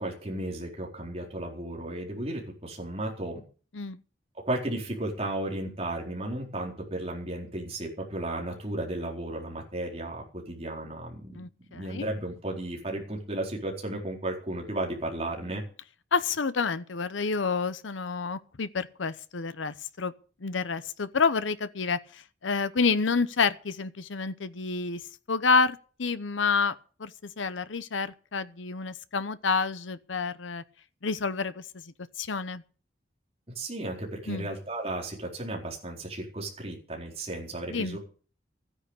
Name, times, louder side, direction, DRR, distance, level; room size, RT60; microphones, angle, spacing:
voice 1, 0.0-3.4 4.4-11.4 11.7-15.6 33.6-38.0, right 1 dB, 30° right, 4.2 m, -34 dB
voice 2, 11.3-12.1 16.1-20.1 20.4-25.0 25.3-30.6 31.0-31.6 32.2-32.6 34.3-34.5 37.7-38.0, left 4 dB, 90° left, 0.8 m, -29 dB
13.5 x 10.0 x 6.6 m
head